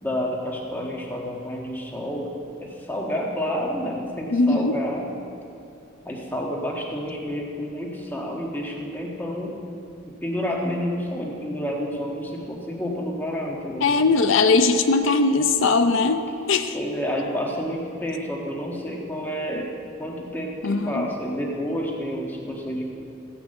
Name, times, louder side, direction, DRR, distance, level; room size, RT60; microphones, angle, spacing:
voice 1, 0.0-5.0 6.0-9.6 10.1-13.9 16.7-22.8, equal, 10° left, -2 dB, 1.4 m, -29 dB
voice 2, 4.3-4.8 13.8-16.8 20.6-21.1, left 3 dB, 75° left, 8 dB, 0.6 m, -20 dB
15.5 x 6.0 x 7.7 m, 2.9 s
head